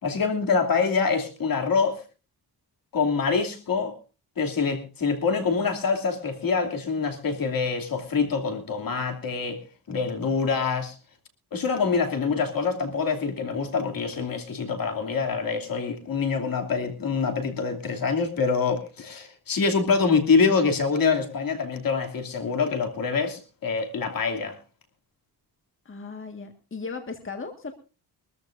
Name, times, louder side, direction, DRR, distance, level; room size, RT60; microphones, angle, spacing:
voice 1, 0.0-2.0 2.9-4.0 4.4-9.6 9.9-10.9 11.5-24.5, left 5 dB, 60° left, 2.8 m, -25 dB
voice 2, 25.8-27.7, left 4 dB, 30° left, 1.7 m, -36 dB
23.5 x 14.0 x 2.6 m
cardioid pair, 105°, 39 cm